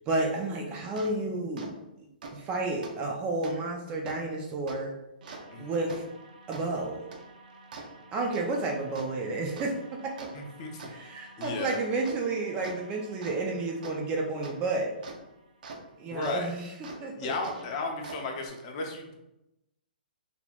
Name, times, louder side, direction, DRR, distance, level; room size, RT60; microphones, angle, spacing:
voice 1, 0.1-1.7 2.3-4.9 5.6-6.0 6.5-7.0 8.1-9.7 10.0-10.3 10.9-14.9 16.0-16.7 17.0-17.3, right 2 dB, 20° right, 1 dB, 0.4 m, -31 dB
sound 1, 1.0-1.1 1.6-1.7 2.2-2.3 2.8-2.9 3.4-3.5 4.1-4.2 4.7-4.8 5.2-15.8 16.2-16.3 16.8-17.0 17.4-18.5, right 3 dB, 60° right, 0.7 m, -46 dB
voice 2, 10.3-10.9 11.4-11.8 16.1-16.5 17.2-19.1, left 3 dB, 35° left, 2 dB, 0.6 m, -34 dB
4.0 x 2.9 x 2.3 m, 0.89 s
hypercardioid pair, 155°, 5 cm